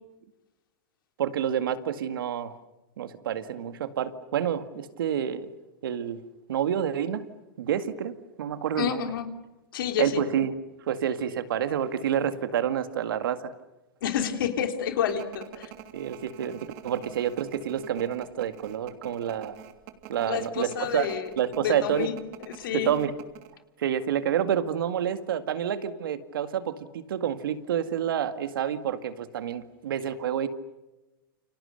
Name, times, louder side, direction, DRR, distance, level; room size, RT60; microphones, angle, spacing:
voice 1, 1.2-2.5 3.0-5.5 5.8-6.2 6.5-7.2 7.6-9.1 10.0-10.6 10.9-13.5 15.9-19.6 20.1-21.1 21.4-22.1 22.7-23.2 23.8-30.5, right 9 dB, 75° right, 10 dB, 2.1 m, -28 dB
voice 2, 8.8-9.3 9.7-10.2 14.0-15.7 20.3-21.3 21.6-22.2 22.5-22.9, left 9 dB, 70° left, 6 dB, 3.5 m, -29 dB
sound 1, 15.1-23.5, right 11 dB, 55° right, 2.9 m, -45 dB
29.5 x 27.0 x 6.7 m, 1.0 s
hypercardioid pair, 115°, 12 cm